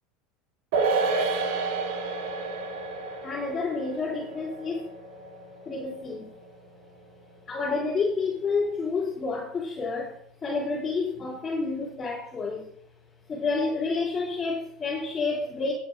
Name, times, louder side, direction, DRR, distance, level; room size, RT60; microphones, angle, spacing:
sound 1, 0.7-7.4 7.7-7.8, right 4 dB, 70° right, 2.9 m, -31 dB
voice 1, 3.2-4.9 5.6-6.3 7.5-10.1 10.4-12.7 13.3-15.7, left 4 dB, 25° left, 3.2 m, -29 dB
22.0 x 8.1 x 2.6 m
hypercardioid pair, 95°, 0 cm